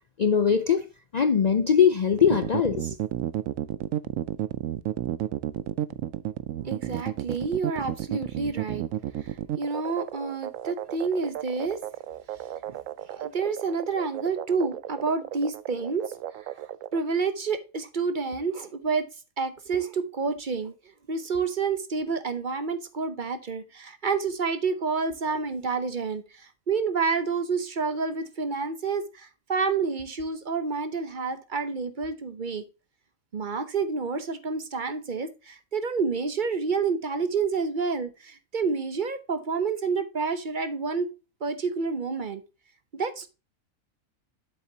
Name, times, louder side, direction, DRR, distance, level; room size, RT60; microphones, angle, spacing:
voice 1, 0.2-0.9 1.1-3.0, left 7 dB, 85° left, 0.3 m, -21 dB
sound 1, 2.2-17.0, right 12 dB, 75° right, 0.9 m, -32 dB
voice 2, 6.5-8.8 9.2-11.8 12.7-12.8 13.1-16.1 16.4-16.5 16.9-19.1 19.4-20.7 21.1-32.6 33.3-41.1 41.4-42.4 42.9-43.3, right 4 dB, 40° right, 0.8 m, -29 dB
8.0 x 7.1 x 2.8 m
omnidirectional pair, 1.4 m